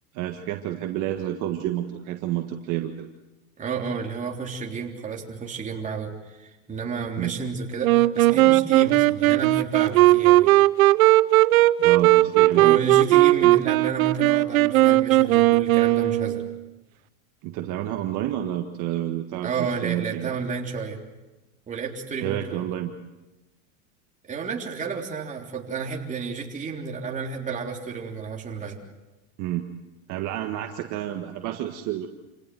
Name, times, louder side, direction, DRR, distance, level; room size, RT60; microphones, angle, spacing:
voice 1, 0.1-3.1 7.2-7.3 11.8-12.8 13.4-13.5 17.4-20.3 22.2-22.9 29.4-29.7 30.1-32.1, right 12 dB, 45° right, 4 dB, 1.8 m, -29 dB
voice 2, 3.6-10.5 12.6-16.4 19.4-21.0 21.7-22.6 24.3-28.8, right 5 dB, 20° right, 0 dB, 3.5 m, -31 dB
Wind instrument woodwind instrument, 7.8-16.6, right 17 dB, 85° right, 0.7 m, -18 dB
28.0 x 17.5 x 7.9 m, 1.1 s
supercardioid pair, 135°, 40 cm